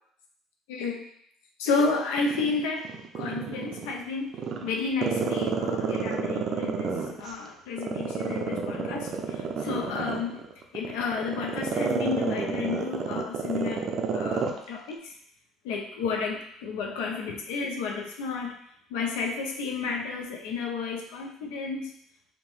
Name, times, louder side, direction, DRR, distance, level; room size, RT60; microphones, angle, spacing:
voice 1, 0.7-1.0 1.6-2.8 3.2-4.3 4.6-10.4 10.7-15.1 15.6-18.6 18.9-21.9, left 4 dB, 85° left, 1 dB, 0.4 m, -31 dB
Growling, 2.2-3.9 4.3-7.3 7.8-14.6 14.9-15.0, right 6 dB, 50° right, 0.4 m, -29 dB
2.8 x 2.1 x 3.0 m, 0.69 s
supercardioid pair, 85°, 0 cm